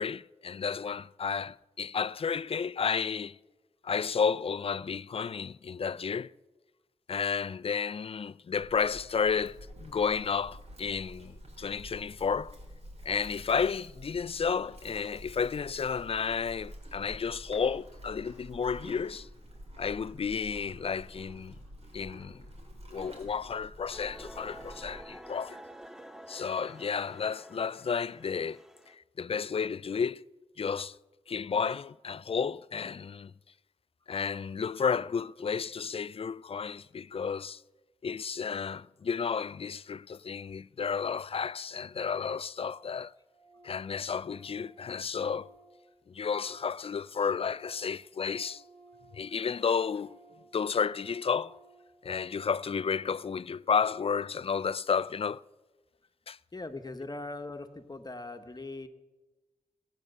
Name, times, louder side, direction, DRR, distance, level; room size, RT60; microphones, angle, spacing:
voice 1, 0.0-3.4 3.8-6.3 7.1-12.6 13.0-19.3 19.8-21.6 21.9-22.5 22.9-25.6 26.3-28.6 28.9-30.2 30.6-31.0 31.3-33.3 34.1-37.6 38.0-43.1 43.6-45.5 46.1-48.6 49.1-50.2 50.5-51.6 52.0-55.4 56.3-56.4, left 6 dB, 45° left, 0.3 m, -32 dB
Livestock farm animals working animals, 8.5-25.1, equal, 50° right, 3.5 m, -49 dB
sound 1, 23.9-29.0, equal, 5° right, 0.7 m, -49 dB
Organ, 41.9-42.0 42.2-42.3 42.6-43.0 43.3-46.9 47.1-52.8, right 2 dB, 80° right, 5.6 m, -58 dB
voice 2, 56.5-58.9, left 2 dB, 30° left, 1.1 m, -40 dB
18.0 x 8.5 x 6.7 m
cardioid pair, 65°, 13 cm